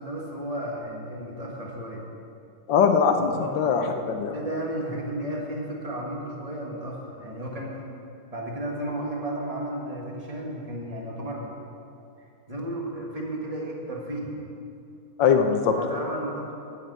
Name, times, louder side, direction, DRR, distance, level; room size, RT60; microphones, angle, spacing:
voice 1, 0.0-2.0 3.3-7.8 8.3-11.6 12.5-14.3 15.8-16.5, right 1 dB, 20° right, -2 dB, 1.4 m, -33 dB
voice 2, 2.7-4.3 15.2-15.8, left 6 dB, 70° left, 5 dB, 1.3 m, -21 dB
9.0 x 7.5 x 8.0 m, 2.6 s
omnidirectional pair, 2.3 m